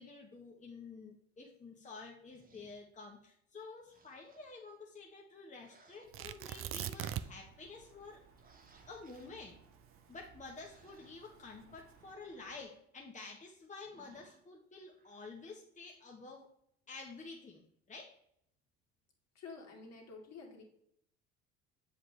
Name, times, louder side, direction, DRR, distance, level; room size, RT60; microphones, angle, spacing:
voice 1, 0.0-8.2 8.9-9.6 10.1-16.5 16.9-18.1, left 3 dB, 25° left, -1 dB, 1.3 m, -50 dB
sound 1, 2.3-2.8 3.8-4.6 5.6-6.6 7.0-7.4 8.4-9.4 10.5-11.2 13.8-14.4 14.9-15.3, right 3 dB, 25° right, 1.3 m, -65 dB
Tearing, 6.1-7.5 7.8-7.9 8.5-10.8 11.5-12.0, right 11 dB, 45° right, 0.5 m, -41 dB
sound 2, 6.1-12.7, right 4 dB, 75° right, 1.7 m, -66 dB
voice 2, 19.3-20.6, left 4 dB, 50° left, 0 dB, 2.3 m, -50 dB
7.3 x 4.9 x 3.3 m, 0.71 s
hypercardioid pair, 65°, 32 cm